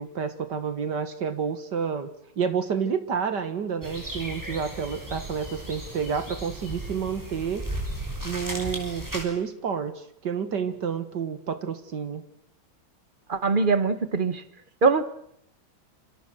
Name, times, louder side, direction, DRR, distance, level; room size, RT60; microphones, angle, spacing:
voice 1, 0.0-2.1 2.4-7.7 8.2-12.2, right 6 dB, 60° right, 10 dB, 2.1 m, -29 dB
sound 1, 3.8-9.2, right 1 dB, 10° right, 5.9 m, -35 dB
voice 2, 13.3-14.4 14.8-15.0, right 4 dB, 30° right, 11 dB, 1.3 m, -22 dB
28.5 x 25.5 x 6.3 m, 0.75 s
omnidirectional pair, 2.2 m